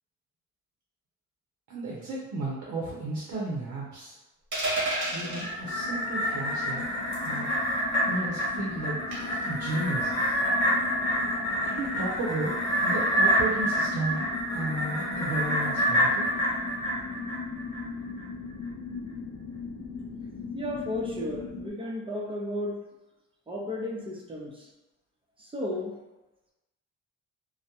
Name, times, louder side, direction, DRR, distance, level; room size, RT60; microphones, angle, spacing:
voice 1, 1.7-4.2 5.1-6.8 7.2-7.5 8.1-9.0 9.4-10.4 11.7-12.5 12.8-16.3, right 2 dB, 70° right, -5 dB, 0.6 m, -33 dB
sound 1, 4.5-5.5 7.1-7.4 9.1-9.4, right 2 dB, 40° right, 0.9 m, -30 dB
sound 2, 5.0-21.7, left 4 dB, 65° left, 0.5 m, -39 dB
sound 3, 5.2-17.8 18.2-18.3, equal, 25° left, 1.1 m, -28 dB
voice 2, 20.5-22.8 23.5-24.7 25.4-25.9, left 1 dB, 15° right, -3 dB, 0.6 m, -34 dB
2.2 x 2.1 x 2.8 m, 1.0 s
cardioid pair, 90°, 30 cm